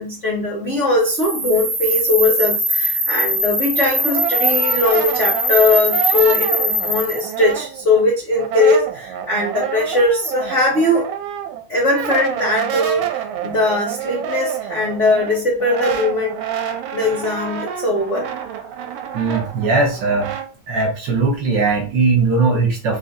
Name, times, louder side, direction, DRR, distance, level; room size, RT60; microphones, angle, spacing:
voice 1, 0.0-11.1 11.7-16.4 16.9-18.3, left 2 dB, 80° left, -4 dB, 0.6 m, -19 dB
sound 1, 1.0-7.3, equal, 45° right, 2.0 m, -21 dB
Brass instrument, 3.6-8.0 8.3-20.5, right 9 dB, 80° right, 2.0 m, -28 dB
voice 2, 19.1-20.3 20.7-23.0, right 3 dB, 65° right, 0 dB, 1.1 m, -19 dB
4.4 x 2.8 x 3.6 m, 0.36 s
omnidirectional pair, 3.4 m